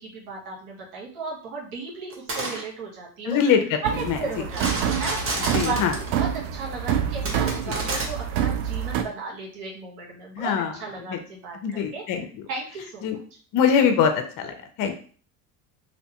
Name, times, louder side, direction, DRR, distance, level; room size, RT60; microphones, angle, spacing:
voice 1, 0.0-3.4 3.8-10.5 10.8-12.0 12.5-13.1, right 4 dB, 85° right, -3 dB, 1.3 m, -35 dB
sound 1, 2.1-2.6 4.5-6.1 7.2-8.0, right 2 dB, 30° right, 0.8 m, -29 dB
voice 2, 3.2-3.8 4.1-4.2 5.5-5.9 10.4-10.7 11.0-11.2 11.6-12.3 13.0-13.2 13.5-14.5 14.8-14.9, left 7 dB, 45° left, 6 dB, 0.6 m, -22 dB
sound 2, 3.8-9.0, right 9 dB, 60° right, 0.5 m, -27 dB
2.8 x 2.1 x 2.9 m, 0.42 s
supercardioid pair, 90°, 45 cm